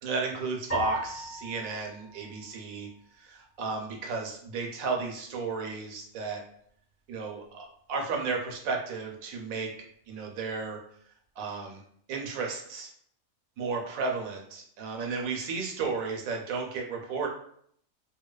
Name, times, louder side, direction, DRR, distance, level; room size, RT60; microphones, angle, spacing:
voice 1, 0.0-2.9 3.2-6.4 7.1-10.8 11.4-11.8 12.1-12.9 13.6-17.3, right 4 dB, 80° right, 1 dB, 1.0 m, -33 dB
sound 1, 0.7-3.2, right 1 dB, 30° left, 1.4 m, -39 dB
2.7 x 2.1 x 2.2 m, 0.65 s
omnidirectional pair, 1.4 m